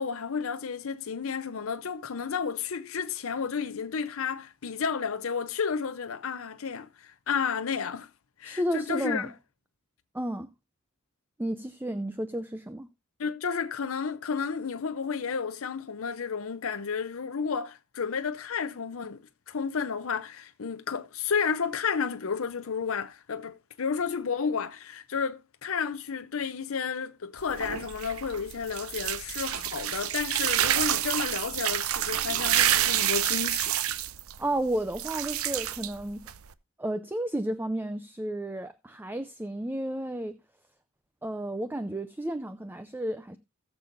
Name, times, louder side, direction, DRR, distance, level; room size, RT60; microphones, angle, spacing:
voice 1, 0.0-8.1 8.4-9.3 13.2-33.8, left 6 dB, 65° left, 0.6 m, -32 dB
voice 2, 8.4-9.3 10.1-10.5 11.4-12.9 34.4-36.2 36.8-40.3 41.2-43.4, right 1 dB, 10° right, 0.5 m, -32 dB
sound 1, 27.4-36.5, right 11 dB, 75° right, 0.6 m, -28 dB
18.5 x 6.9 x 2.5 m
head